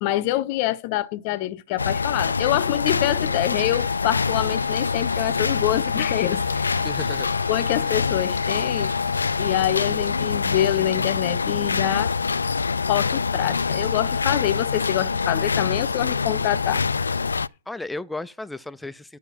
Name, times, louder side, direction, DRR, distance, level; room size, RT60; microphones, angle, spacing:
voice 1, 0.0-6.8 7.5-8.9 9.4-12.2 12.9-16.8, left 15 dB, 35° left, 0.8 m, -25 dB
sound 1, 1.8-17.5, left 5 dB, 80° left, 0.4 m, -25 dB
sound 2, 3.5-10.2, right 5 dB, 80° right, 1.0 m, -43 dB
voice 2, 6.8-7.3 17.7-19.2, left 2 dB, 5° left, 0.5 m, -34 dB
9.9 x 4.5 x 7.2 m
hypercardioid pair, 125°, 0 cm